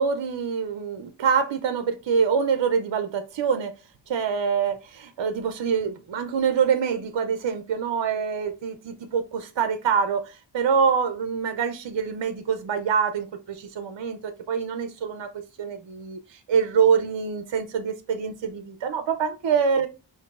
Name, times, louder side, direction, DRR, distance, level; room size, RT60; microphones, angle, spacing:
voice 1, 0.0-3.7 4.1-19.9, right 6 dB, 70° right, 0.5 m, -25 dB
5.6 x 2.6 x 2.3 m
wide cardioid pair, 55°, 46 cm